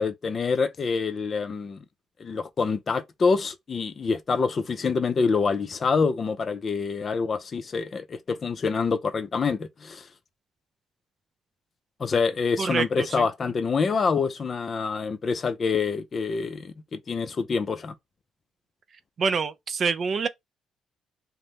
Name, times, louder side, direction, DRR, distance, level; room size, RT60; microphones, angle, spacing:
voice 1, 0.0-1.8 2.2-10.1 12.0-17.9, left 5 dB, 40° left, 0.4 m, -26 dB
voice 2, 12.6-13.5 19.2-20.3, right 5 dB, 50° right, 0.3 m, -27 dB
2.7 x 2.0 x 3.3 m
cardioid pair, 90°, 0 cm